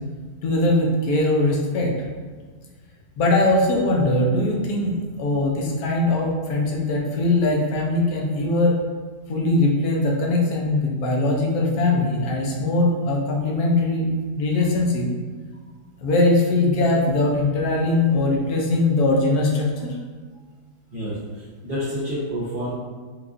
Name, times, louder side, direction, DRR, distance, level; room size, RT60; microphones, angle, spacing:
voice 1, 0.4-1.9 3.2-8.8 9.3-15.1 16.0-19.9, left 2 dB, 70° left, -1 dB, 1.1 m, -21 dB
voice 2, 20.9-22.7, equal, 45° right, -10 dB, 0.8 m, -29 dB
4.7 x 2.4 x 2.5 m, 1.5 s
omnidirectional pair, 1.8 m